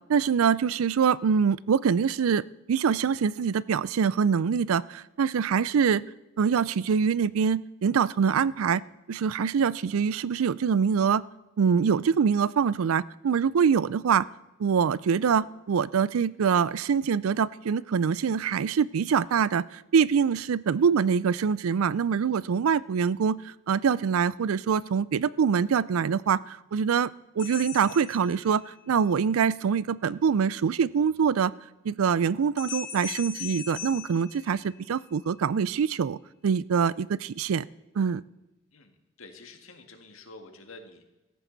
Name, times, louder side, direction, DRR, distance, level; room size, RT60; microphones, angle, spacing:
voice 1, 0.1-2.4 2.7-6.0 6.4-8.8 9.1-11.2 11.6-14.3 14.6-27.1 27.4-31.5 31.8-36.2 36.4-37.6 38.0-38.2, right 6 dB, 90° right, 20 dB, 0.4 m, -24 dB
sound 1, 27.4-28.9 32.6-35.1, left 8 dB, 55° left, 2.2 m, -40 dB
voice 2, 38.7-41.1, left 3 dB, 80° left, 5 dB, 1.8 m, -48 dB
16.0 x 14.0 x 4.0 m, 0.99 s
head